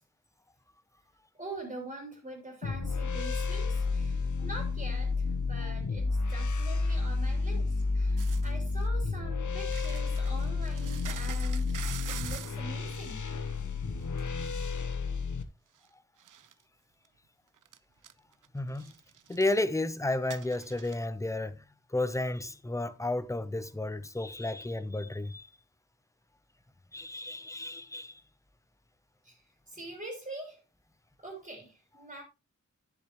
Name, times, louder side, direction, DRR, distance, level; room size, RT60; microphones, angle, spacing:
voice 1, 1.4-13.3 29.2-30.6 31.2-32.2, right 2 dB, 30° right, 3.2 m, -44 dB
sound 1, 2.6-15.4, left 3 dB, 75° left, 1.0 m, -31 dB
sound 2, 8.2-8.8 9.6-12.6 14.2-14.3 15.8-15.9 16.2-16.6 17.0-17.1 17.6-17.8 18.0-18.5 18.7-19.5 20.3-21.0, right 9 dB, 85° right, 0.5 m, -45 dB
voice 2, 18.5-18.9 19.3-21.6 21.9-25.5 26.9-28.1, left 2 dB, 10° left, 0.7 m, -32 dB
10.5 x 7.2 x 3.0 m
wide cardioid pair, 95°, 30 cm